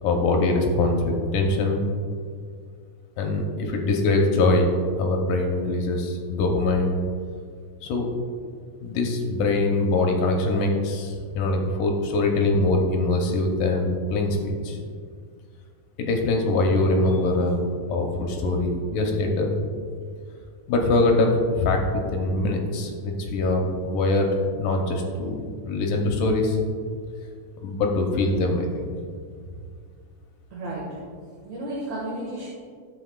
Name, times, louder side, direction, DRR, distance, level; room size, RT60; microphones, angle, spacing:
voice 1, 0.0-1.9 3.2-4.7 5.0-7.0 7.8-8.1 8.8-14.8 16.0-19.5 20.7-26.6 27.6-28.9, left 2 dB, 75° left, 2 dB, 2.3 m, -23 dB
voice 2, 30.5-31.0 31.4-32.5, right 1 dB, 55° right, -7 dB, 2.7 m, -33 dB
13.0 x 7.5 x 2.4 m, 2.1 s
omnidirectional pair, 4.1 m